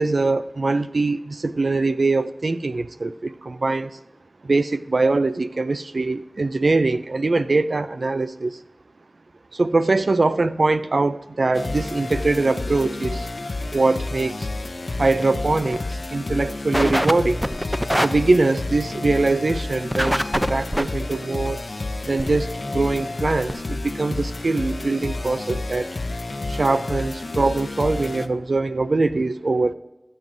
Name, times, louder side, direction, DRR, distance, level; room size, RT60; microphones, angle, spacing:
voice 1, 0.0-4.0 4.4-8.6 9.5-13.3 13.7-14.5 15.0-17.5 18.0-21.7 22.0-25.9 26.5-29.7, right 3 dB, 85° right, 12 dB, 0.3 m, -22 dB
sound 1, 11.5-28.3, left 2 dB, 75° left, 0.5 m, -30 dB
sound 2, 14.4-14.5 14.9-15.2 15.6-15.8 16.1-16.2 16.7-17.1 17.4-18.1 19.9-20.8 22.2-22.3 22.9-23.0 23.2-23.3 23.5-23.6, equal, 10° right, 0.4 m, -22 dB
19.0 x 7.5 x 2.6 m, 0.93 s
wide cardioid pair, 50°, 0 cm